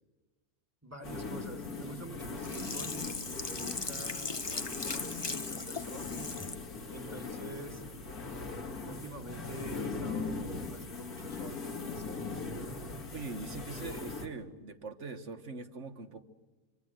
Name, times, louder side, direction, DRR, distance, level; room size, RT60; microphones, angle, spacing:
voice 1, 0.8-3.1 3.4-6.5 6.9-8.2 8.8-12.2, right 2 dB, 10° right, 4 dB, 2.0 m, -47 dB
sound 1, 1.0-14.3, left 4 dB, 80° left, 2.7 m, -40 dB
Sink (filling or washing), 2.4-6.6 7.1-7.2, left 3 dB, 25° left, 0.6 m, -38 dB
voice 2, 13.1-16.2, right 4 dB, 55° right, 8 dB, 1.8 m, -42 dB
25.5 x 25.0 x 8.0 m, 1.2 s
omnidirectional pair, 1.6 m